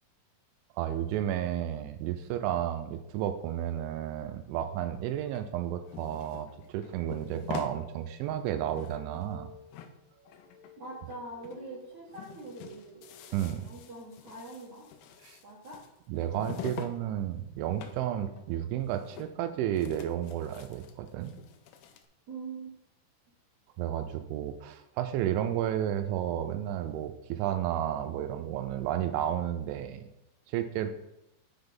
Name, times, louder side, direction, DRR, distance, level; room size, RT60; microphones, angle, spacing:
voice 1, 0.8-9.5 13.3-13.7 15.2-15.4 16.1-21.4 23.8-30.0 30.5-30.9, right 11 dB, 85° right, 9 dB, 2.9 m, -32 dB
sound 1, 5.3-7.8 8.2-8.3 8.5-9.4 9.7-11.2 11.4-11.6 11.9-17.0 17.2-18.1 18.4-18.5 18.8-19.5 19.7-22.0, left 8 dB, 85° left, 2.4 m, -46 dB
sound 2, 6.9-13.5, equal, 35° right, 1.6 m, -55 dB
voice 2, 10.8-13.0 13.6-14.9 15.4-15.8 16.3-16.6 22.3-22.7, right 2 dB, 60° right, -6 dB, 2.0 m, -43 dB
6.3 x 5.9 x 5.3 m, 0.82 s
omnidirectional pair, 5.5 m